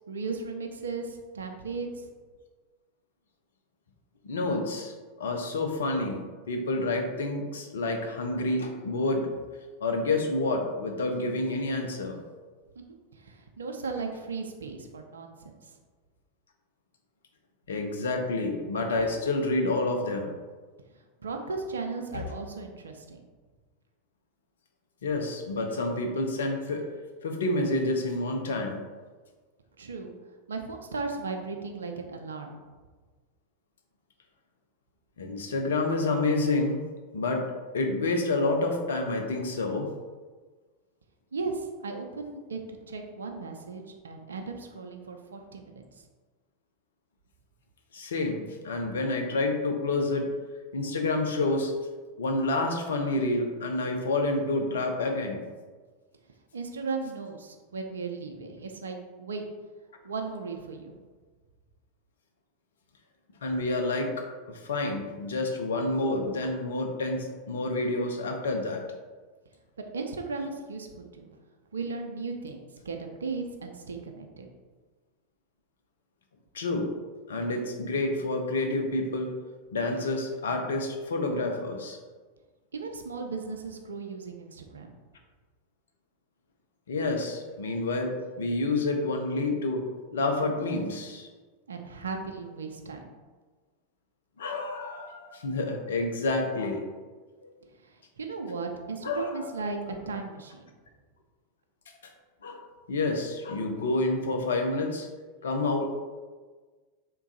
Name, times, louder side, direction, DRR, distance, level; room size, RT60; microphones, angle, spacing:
voice 1, 0.1-2.1 13.2-15.7 21.2-23.2 29.8-30.1 30.5-32.6 41.3-45.8 56.5-59.4 60.0-60.9 69.9-71.4 71.7-74.5 82.7-84.9 91.7-93.1 97.8-99.8 100.1-100.7, right 4 dB, 75° right, 4 dB, 0.4 m, -36 dB
voice 2, 4.2-6.2 6.5-9.3 9.8-12.2 17.7-20.3 22.1-22.2 25.0-26.8 27.2-28.8 35.2-36.8 37.1-37.4 37.7-39.9 47.9-50.3 50.7-51.7 52.2-55.4 63.4-68.8 76.5-76.9 77.3-79.3 79.7-82.0 86.9-89.8 90.1-91.3 94.4-96.8 99.0-99.5 102.4-102.6 102.9-105.1 105.4-105.9, left 2 dB, 70° left, 4 dB, 0.5 m, -28 dB
3.5 x 2.2 x 3.9 m, 1.4 s
figure-of-eight pair, 85°, 0 cm